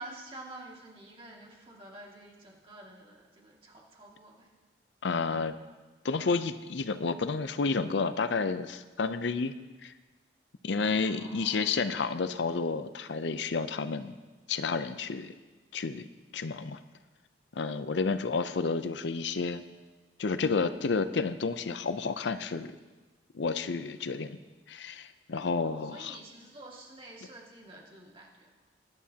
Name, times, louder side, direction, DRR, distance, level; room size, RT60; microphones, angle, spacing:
voice 1, 0.0-4.5 10.8-11.7 25.6-28.5, right 2 dB, 30° right, -2 dB, 2.1 m, -48 dB
voice 2, 5.0-5.5 6.0-9.5 9.8-9.9 10.6-14.1 14.5-15.3 15.7-16.1 16.3-16.8 17.5-19.6 20.2-22.7 23.3-24.4 24.7-26.2, left 4 dB, 75° left, 12 dB, 0.6 m, -30 dB
21.0 x 11.0 x 2.9 m, 1.3 s
head